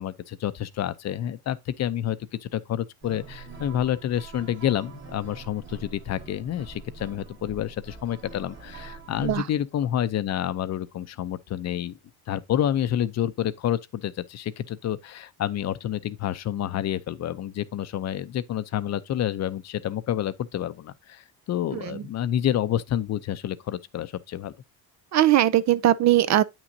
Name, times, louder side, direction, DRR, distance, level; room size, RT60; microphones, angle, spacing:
voice 1, 0.0-12.0 12.3-24.5, left 11 dB, 45° left, 0.6 m, -29 dB
sound 1, 3.0-9.4, right 4 dB, 30° right, 2.1 m, -44 dB
voice 2, 21.7-22.0 25.1-26.4, right 13 dB, 45° right, 0.5 m, -20 dB
8.9 x 6.0 x 2.7 m
cardioid pair, 115°, 37 cm